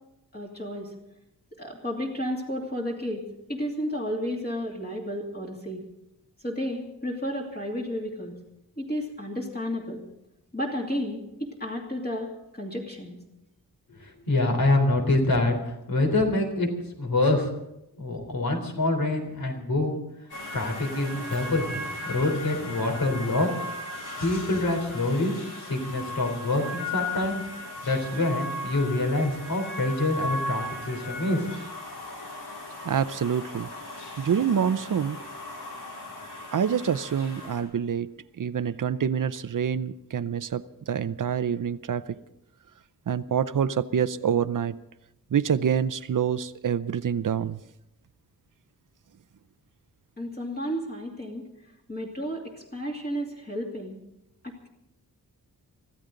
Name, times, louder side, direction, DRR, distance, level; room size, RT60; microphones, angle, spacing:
voice 1, 0.3-0.9 1.5-3.2 3.5-5.8 6.4-8.4 8.8-10.0 10.5-13.2 50.2-51.4 51.9-54.0 54.4-54.7, equal, 25° left, -3 dB, 2.7 m, -32 dB
voice 2, 14.0-16.7 17.0-17.5 18.0-20.0 20.5-21.7 22.0-23.5 24.2-25.3 25.6-27.4 27.8-31.4, left 2 dB, 65° left, 3 dB, 3.9 m, -25 dB
sound 1, 20.3-37.6, left 2 dB, 85° left, 5.5 m, -37 dB
voice 3, 32.8-33.7 34.2-35.2 36.5-38.1 38.4-42.0 43.1-44.7 45.3-47.6, right 8 dB, 55° right, 14 dB, 0.7 m, -26 dB
24.0 x 15.0 x 3.9 m, 0.85 s
wide cardioid pair, 165°, 38 cm